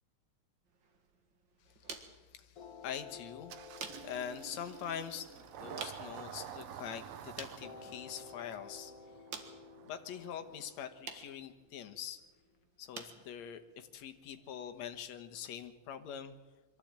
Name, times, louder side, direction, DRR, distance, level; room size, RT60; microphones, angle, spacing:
sound 1, 0.6-15.7, right 5 dB, 45° right, 2.3 m, -53 dB
voice 1, 2.3-3.5 4.0-8.9 9.8-12.2 12.8-16.4, left 9 dB, 70° left, 8 dB, 2.5 m, -44 dB
sound 2, 2.6-6.9 7.6-12.6, left 5 dB, 55° left, 2.5 m, -55 dB
Engine starting, 3.5-10.8, right 9 dB, 65° right, 2.0 m, -50 dB
23.0 x 15.0 x 8.9 m, 1.2 s
omnidirectional pair, 3.4 m